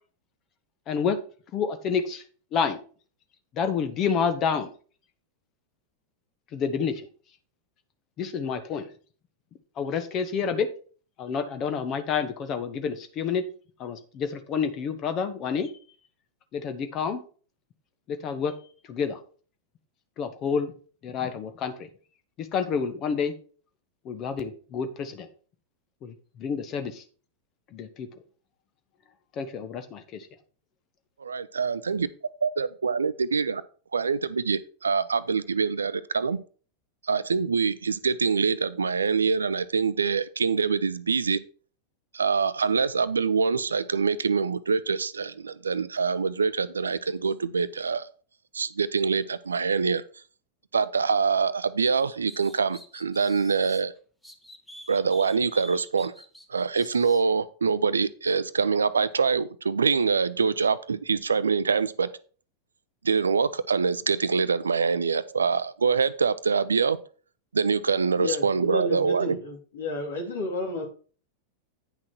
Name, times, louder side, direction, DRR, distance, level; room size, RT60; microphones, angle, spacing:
voice 1, 0.9-1.2 1.5-2.2 2.5-2.8 3.5-4.7 6.5-7.1 8.2-8.8 9.8-10.7 11.2-13.4 13.8-15.7 16.5-17.2 18.1-18.5 18.9-19.2 20.2-20.7 21.0-21.7 22.4-23.3 24.0-25.3 26.0-27.0 27.7-28.1 29.4-30.3, left 6 dB, 35° left, 9 dB, 1.1 m, -28 dB
voice 2, 31.3-32.1 32.4-33.6 33.9-36.4 37.0-41.4 42.1-48.1 48.5-50.0 50.7-53.9 54.9-56.1 56.5-62.1 63.0-67.0 67.5-69.4, right 5 dB, 75° right, 16 dB, 0.5 m, -25 dB
sound 1, 51.8-53.8 54.2-57.2, equal, 5° left, 1.3 m, -48 dB
voice 3, 68.2-70.8, left 2 dB, 65° left, 1 dB, 3.1 m, -32 dB
9.5 x 6.0 x 4.4 m, 0.40 s
figure-of-eight pair, 90°, 0 cm